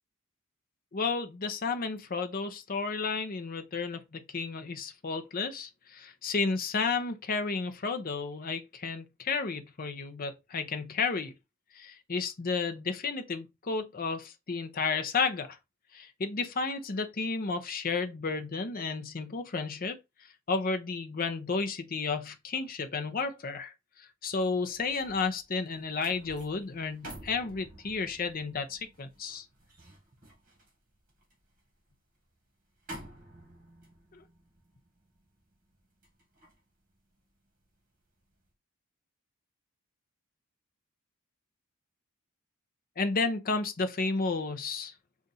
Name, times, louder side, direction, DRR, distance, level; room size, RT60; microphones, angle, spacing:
voice 1, 0.9-11.3 11.7-15.6 15.9-20.0 20.5-23.7 24.0-29.5 34.1-34.2 43.0-44.9, left 4 dB, 40° left, 0.6 m, -32 dB
sound 1, 24.5-37.8 38.2-38.5, right 1 dB, 40° right, 1.5 m, -52 dB
4.0 x 2.5 x 4.0 m
head